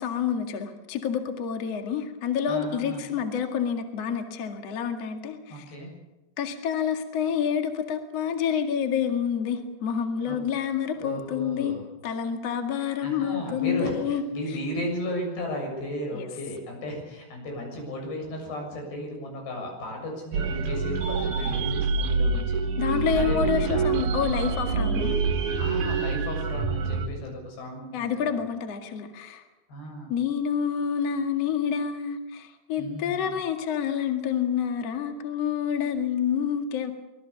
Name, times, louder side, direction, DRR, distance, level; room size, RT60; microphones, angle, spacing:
voice 1, 0.0-5.7 6.4-14.6 16.1-16.3 22.8-25.2 27.9-29.4 30.1-36.9, left 8 dB, 45° left, 5 dB, 2.5 m, -28 dB
voice 2, 2.5-3.0 5.5-5.9 10.3-10.4 10.9-11.8 13.0-22.6 23.2-24.0 25.6-28.4 29.7-30.1 32.8-33.3, equal, 80° left, 2 dB, 9.3 m, -35 dB
sound 1, 20.3-27.1, right 4 dB, 55° right, 2.7 m, -26 dB
26.0 x 20.0 x 7.1 m, 1.0 s
omnidirectional pair, 4.8 m